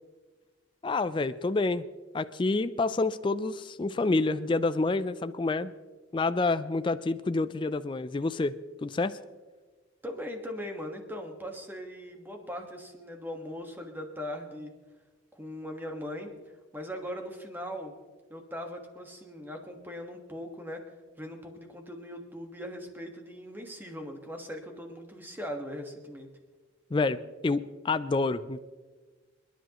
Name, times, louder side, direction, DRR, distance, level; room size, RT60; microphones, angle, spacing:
voice 1, 0.8-1.8 2.1-5.7 6.1-9.2 26.9-28.6, left 3 dB, 25° left, 12 dB, 0.3 m, -28 dB
voice 2, 10.0-14.7 15.3-16.3 16.7-17.9 18.3-20.8 21.2-26.3, equal, 10° right, 3 dB, 1.4 m, -40 dB
28.5 x 10.5 x 3.0 m, 1.4 s
head